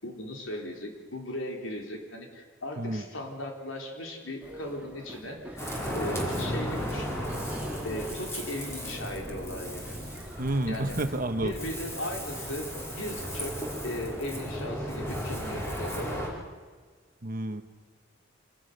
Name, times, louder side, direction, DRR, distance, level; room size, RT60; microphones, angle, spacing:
voice 1, 0.0-7.2 7.8-9.9 10.7-11.0 11.4-13.6 13.8-16.3, left 1 dB, 75° left, 2 dB, 3.9 m, -37 dB
sound 1, 4.4-14.4, right 1 dB, 10° right, 3.3 m, -49 dB
Ocean, 5.6-16.3, equal, 15° left, 4.8 m, -35 dB
voice 2, 10.4-11.5 17.2-17.6, right 1 dB, 45° right, 8 dB, 1.4 m, -30 dB
25.5 x 19.0 x 6.8 m, 1.5 s
head